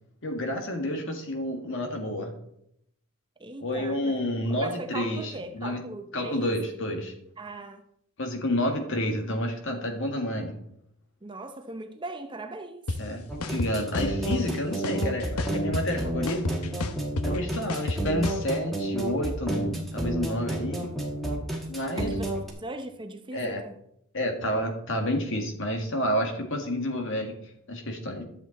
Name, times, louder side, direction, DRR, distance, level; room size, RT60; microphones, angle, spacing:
voice 1, 0.2-2.3 3.6-5.8 6.1-7.1 8.2-10.6 13.0-16.6 17.2-19.7 19.9-20.9 21.7-22.1 23.3-23.6 24.1-27.3 27.7-28.2, left 1 dB, 60° left, 1.8 m, -29 dB
voice 2, 3.4-4.0 4.5-6.5 7.4-7.8 11.2-12.9 22.0-22.3 22.6-23.7, right 2 dB, 20° right, 0.7 m, -39 dB
sound 1, 12.9-13.0 13.4-14.4 14.8-16.0 16.3-18.4, left 2 dB, 80° left, 0.9 m, -30 dB
sound 2, 13.3-22.5, right 1 dB, ahead, 1.8 m, -30 dB
11.5 x 7.6 x 4.1 m
head